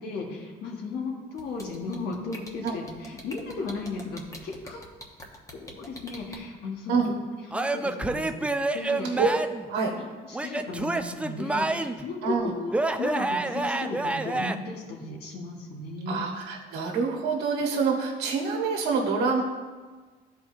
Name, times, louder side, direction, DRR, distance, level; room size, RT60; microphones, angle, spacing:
voice 1, 0.0-4.8 5.5-7.1 7.5-8.5 8.7-9.3 9.7-12.7 13.0-16.2, left 3 dB, 75° left, 0 dB, 1.5 m, -35 dB
sound 1, 1.4-6.4, left 1 dB, 20° left, 1.1 m, -43 dB
Male speech man speaking / Yell / Laughter, 7.5-9.7 10.3-12.1 12.7-14.6, right 2 dB, 5° right, 0.3 m, -28 dB
voice 2, 12.2-12.5 16.1-19.4, right 5 dB, 75° right, 0 dB, 1.3 m, -26 dB
13.0 x 4.5 x 2.7 m, 1.4 s
cardioid pair, 110°, 17 cm